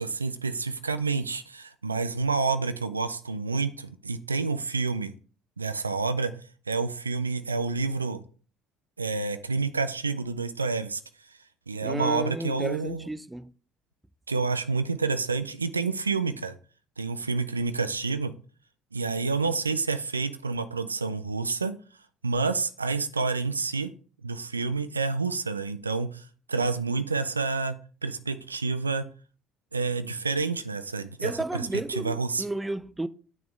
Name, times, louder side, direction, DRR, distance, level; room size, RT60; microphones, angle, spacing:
voice 1, 0.0-5.1 5.6-6.3 6.7-8.2 9.0-11.0 11.7-13.1 14.3-16.6 17.0-18.3 18.9-21.8 22.2-23.9 24.2-29.1 29.7-32.4, right 4 dB, 90° right, 0.4 m, -29 dB
voice 2, 11.8-13.5 31.2-33.1, right 2 dB, 10° right, 0.5 m, -32 dB
8.7 x 6.2 x 3.4 m
figure-of-eight pair, 55°, 0 cm